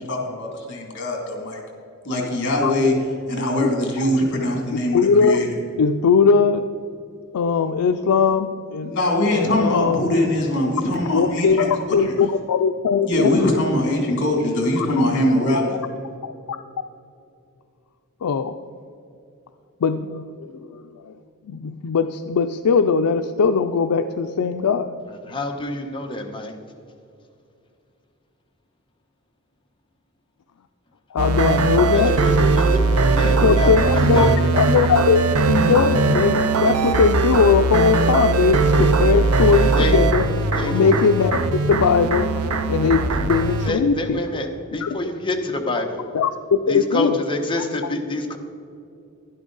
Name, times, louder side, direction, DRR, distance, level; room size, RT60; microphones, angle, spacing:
voice 1, 0.1-1.6 2.0-2.9 3.3-5.5 8.8-11.7 13.0-15.7, left 1 dB, 55° left, 0 dB, 2.6 m, -22 dB
voice 2, 4.9-5.5 5.8-6.6 7.3-10.1 11.1-13.3 14.8-14.9 16.2-16.3 18.2-18.5 19.8-21.1 21.5-24.9 31.1-32.2 33.2-40.2 40.7-41.4 41.7-44.2 44.8-45.0 46.1-47.2 47.8-47.9, left 5 dB, 85° left, 7 dB, 0.4 m, -20 dB
voice 3, 25.2-26.5 31.9-32.8 33.1-34.5 39.7-40.0 40.5-40.9 43.6-46.0 46.7-48.4, left 2 dB, 25° left, 2 dB, 1.1 m, -27 dB
sound 1, 31.2-43.7, right 3 dB, 80° right, 0.7 m, -19 dB
12.0 x 11.0 x 3.9 m, 2.5 s
head